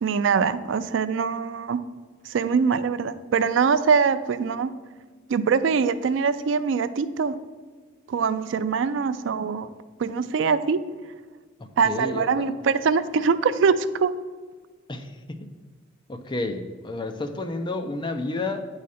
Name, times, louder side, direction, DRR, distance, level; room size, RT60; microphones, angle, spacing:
voice 1, 0.0-1.8 2.3-4.7 5.3-7.3 8.1-9.7 10.0-10.8 11.8-14.1, right 5 dB, 75° right, 13 dB, 0.4 m, -23 dB
voice 2, 11.8-12.5 14.9-15.1 15.4-15.5 16.1-18.7, left 2 dB, 25° left, 6 dB, 0.5 m, -30 dB
8.4 x 4.8 x 4.2 m, 1.5 s
head